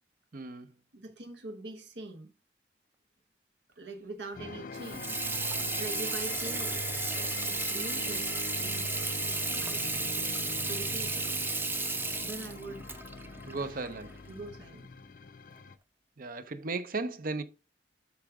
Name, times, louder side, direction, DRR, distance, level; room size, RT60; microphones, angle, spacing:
voice 1, 0.3-0.7 13.5-14.1 16.2-17.4, right 3 dB, 50° right, 0.7 m, -35 dB
voice 2, 0.9-2.3 3.8-5.2 5.8-6.8 7.5-10.1 10.7-11.3 12.2-12.9 13.6-13.9 14.3-14.9, right 2 dB, 75° right, 1.1 m, -43 dB
sound 1, 4.3-15.8, left 4 dB, 50° left, 0.6 m, -42 dB
Water tap faucet / Sink (filling or washing), 4.7-14.3, right 3 dB, 10° right, 0.6 m, -34 dB
8.2 x 6.1 x 3.6 m
head